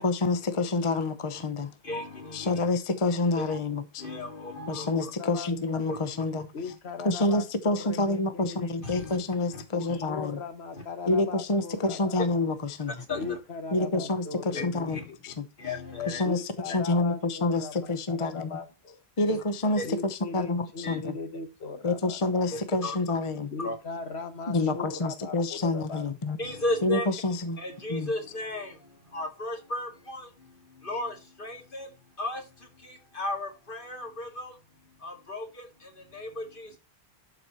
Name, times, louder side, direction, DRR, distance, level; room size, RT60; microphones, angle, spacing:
voice 1, 0.0-1.7 2.3-4.0 4.7-6.5 7.0-10.4 11.1-13.0 13.7-15.5 16.1-18.5 19.2-21.2 21.8-23.5 24.5-26.4 26.8-27.6 27.9-28.1, left 2 dB, 30° left, 0.8 m, -28 dB
voice 2, 1.8-2.7 3.4-3.6 4.0-5.1 5.9-6.0 6.6-6.7 8.8-9.2 9.5-9.6 9.9-10.0 10.7-10.8 13.1-13.4 14.5-14.6 14.9-15.0 15.6-16.2 16.7-16.8 19.2-19.4 19.8-19.9 20.8-21.0 22.5-23.0 23.6-23.8 26.4-27.1 27.6-34.6 35.0-36.8, left 2 dB, 55° left, 2.4 m, -35 dB
voice 3, 5.2-5.5 6.5-8.7 9.7-12.2 13.1-15.2 16.2-19.0 19.8-22.2 23.5-26.0, left 4 dB, 85° left, 1.4 m, -39 dB
12.0 x 4.6 x 4.2 m
omnidirectional pair, 1.1 m